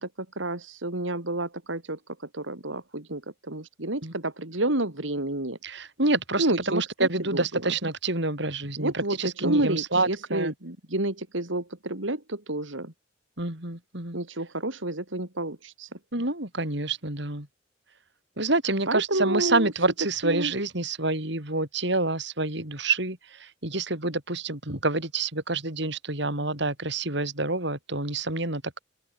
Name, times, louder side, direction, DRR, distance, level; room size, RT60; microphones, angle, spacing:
voice 1, 0.0-5.6 6.4-7.7 8.8-12.9 14.1-16.0 18.9-19.7 20.2-20.5, right 1 dB, 80° right, 3.7 m, -30 dB
voice 2, 5.6-10.5 13.4-14.2 16.1-17.5 18.4-28.8, right 2 dB, 60° right, 5.7 m, -28 dB
open air
head